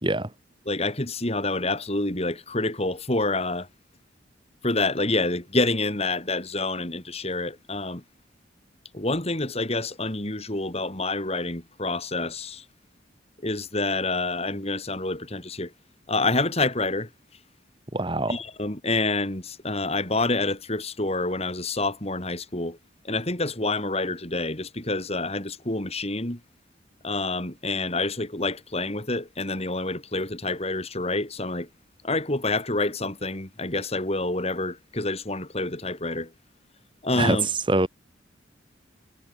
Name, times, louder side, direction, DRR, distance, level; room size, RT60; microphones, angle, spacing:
voice 1, 0.7-3.7 4.6-8.0 8.9-12.6 13.4-15.7 16.1-17.1 18.3-22.8 23.0-26.4 27.0-31.7 32.0-36.3 37.0-37.5, left 2 dB, 35° left, 3.7 m, -27 dB
voice 2, 17.9-18.4 37.2-37.4 37.7-37.9, right 2 dB, 25° right, 2.5 m, -23 dB
head